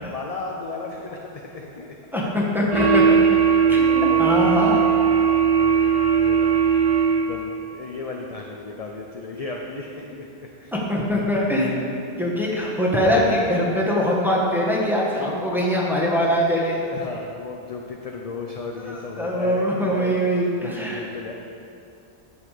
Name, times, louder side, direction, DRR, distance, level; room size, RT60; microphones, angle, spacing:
voice 1, 0.0-2.0 3.6-5.3 5.6-6.6 7.1-10.7 16.9-20.5 20.9-21.3, left 3 dB, 40° left, 1 dB, 0.6 m, -35 dB
voice 2, 2.1-3.2 3.7-4.9 10.7-11.8 12.2-16.8 18.8-21.0, equal, ahead, -5 dB, 1.5 m, -22 dB
sound 1, 2.7-7.5, right 6 dB, 25° right, 0.7 m, -18 dB
9.6 x 7.3 x 5.0 m, 2.6 s
omnidirectional pair, 1.1 m